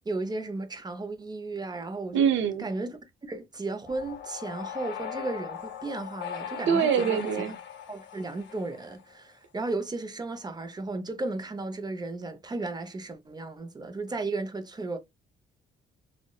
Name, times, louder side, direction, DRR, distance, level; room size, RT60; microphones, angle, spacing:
voice 1, 0.1-2.3 2.6-2.9 3.2-7.6 7.9-15.0, right 2 dB, 20° right, 0.5 m, -34 dB
voice 2, 2.1-2.7 6.7-7.6, right 7 dB, 75° right, 0.6 m, -24 dB
sound 1, 3.9-9.1, left 9 dB, 65° left, 0.6 m, -39 dB
2.7 x 2.1 x 2.2 m
cardioid pair, 90°, 20 cm